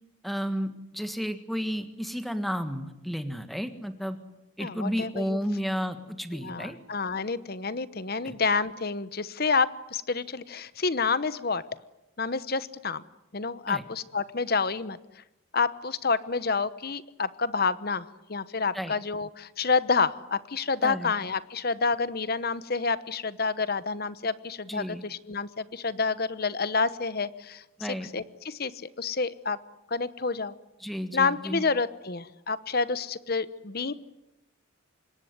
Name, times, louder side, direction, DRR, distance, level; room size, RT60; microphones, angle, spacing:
voice 1, 0.2-4.2 4.6-6.8 8.2-8.3 13.7-13.8 18.7-18.9 20.8-21.1 24.7-25.0 27.8-28.1 30.8-31.6, equal, ahead, 9 dB, 1.6 m, -32 dB
voice 2, 4.6-5.4 6.3-11.6 12.2-13.0 13.3-15.2 15.5-29.6 29.9-30.5 31.1-33.9, left 4 dB, 45° left, 15 dB, 1.0 m, -29 dB
25.5 x 22.0 x 9.6 m, 0.96 s
head